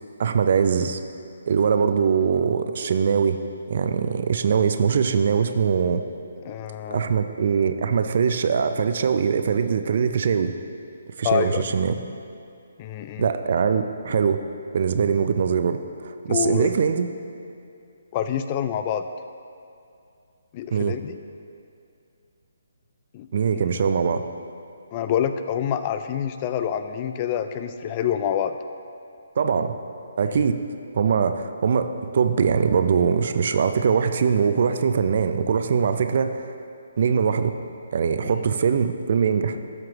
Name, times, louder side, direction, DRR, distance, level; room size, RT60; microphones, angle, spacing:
voice 1, 0.2-1.0 1.5-3.4 3.7-6.0 6.9-10.5 11.2-12.0 13.2-14.4 14.7-17.1 20.7-21.0 23.3-24.2 29.4-29.7 30.2-30.6 30.9-36.5 37.0-37.5 37.9-39.6, right 6 dB, 50° right, 9 dB, 0.5 m, -22 dB
voice 2, 6.5-7.1 11.2-11.6 12.8-13.3 16.3-16.7 18.1-19.0 20.5-21.1 23.1-23.3 23.5-23.7 24.9-28.6 30.3-30.4 38.3-38.4, left 9 dB, 30° left, 9 dB, 0.3 m, -27 dB
13.0 x 5.9 x 3.0 m, 2.5 s
figure-of-eight pair, 140°, 0 cm